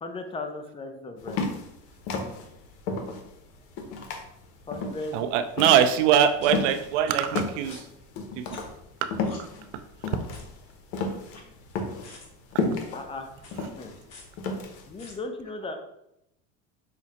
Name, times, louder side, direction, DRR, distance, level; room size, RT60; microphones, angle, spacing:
voice 1, 0.0-1.4 4.7-5.2 12.9-13.3 13.8-13.9 14.9-15.8, left 2 dB, 15° left, 5 dB, 0.4 m, -36 dB
sound 1, 1.2-7.0 7.3-15.1, left 3 dB, 75° left, 0.7 m, -32 dB
voice 2, 5.1-7.8 8.4-8.6, right 9 dB, 75° right, 8 dB, 0.5 m, -22 dB
sound 2, 5.5-5.6 6.4-6.5 7.1-7.2 7.7-7.8 8.5-8.8 9.2-9.4 10.3-10.6 11.1-11.7 12.0-12.3 13.4-13.5 14.1-14.3 15.0-15.1, left 3 dB, 45° left, 1.0 m, -47 dB
5.0 x 2.0 x 2.8 m, 0.82 s
supercardioid pair, 95°, 36 cm